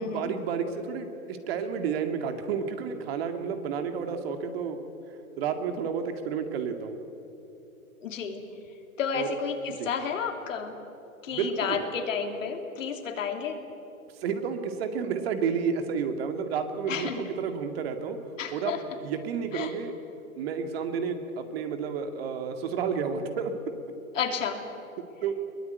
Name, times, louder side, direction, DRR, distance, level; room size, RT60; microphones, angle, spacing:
voice 1, 0.0-4.8 5.4-7.0 9.1-9.3 9.8-9.9 11.3-11.8 14.2-18.2 18.5-18.7 19.0-19.9 20.4-23.5 25.2-25.4, right 6 dB, 45° right, 7 dB, 2.3 m, -31 dB
voice 2, 8.0-8.4 9.0-10.7 11.2-13.6 16.9-17.2 18.4-18.8 19.5-19.7 24.1-24.6, left 6 dB, 60° left, 5 dB, 3.1 m, -31 dB
22.5 x 19.5 x 9.3 m, 2.9 s
hypercardioid pair, 135°, 43 cm